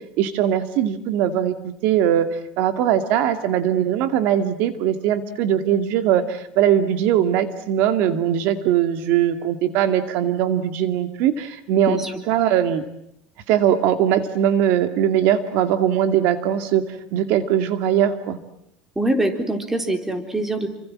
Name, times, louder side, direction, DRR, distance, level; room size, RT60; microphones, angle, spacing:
voice 1, 0.2-2.3 2.6-12.0 12.3-12.8 13.5-16.8 17.1-18.4, right 10 dB, 60° right, 10 dB, 2.3 m, -20 dB
voice 2, 19.0-20.7, right 1 dB, 10° right, 7 dB, 3.9 m, -23 dB
29.5 x 25.5 x 7.6 m, 0.75 s
cardioid pair, 145°, 3 cm